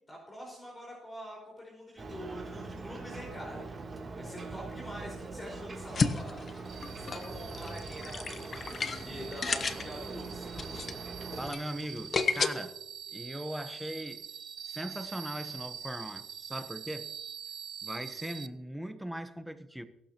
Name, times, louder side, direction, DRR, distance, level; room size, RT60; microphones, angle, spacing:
voice 1, 0.1-3.6 4.2-6.5 6.9-8.7 9.0-10.5, equal, 20° left, 5.3 m, -45 dB
Ocean, 2.0-11.5, right 3 dB, 35° right, 3.1 m, -42 dB
sound 1, 5.8-12.5, left 5 dB, 40° left, 1.1 m, -33 dB
sound 2, 6.6-18.5, right 8 dB, 60° right, 0.7 m, -45 dB
voice 2, 11.4-12.8 13.1-14.2 14.7-17.1 17.8-19.8, equal, 5° right, 1.2 m, -39 dB
22.5 x 12.0 x 3.0 m
cardioid pair, 90°, 0 cm